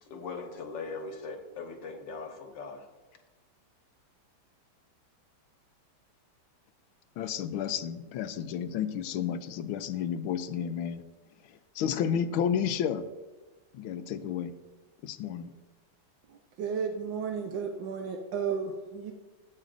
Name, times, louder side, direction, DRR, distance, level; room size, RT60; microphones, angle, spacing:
voice 1, 0.0-2.9, left 4 dB, 65° left, 3 dB, 1.9 m, -40 dB
voice 2, 7.2-11.0 11.7-13.1 13.7-14.5 15.0-15.5, left 8 dB, 85° left, 12 dB, 1.5 m, -31 dB
voice 3, 16.3-19.1, right 6 dB, 70° right, 2 dB, 1.4 m, -33 dB
16.0 x 8.7 x 2.6 m, 1.2 s
omnidirectional pair, 2.2 m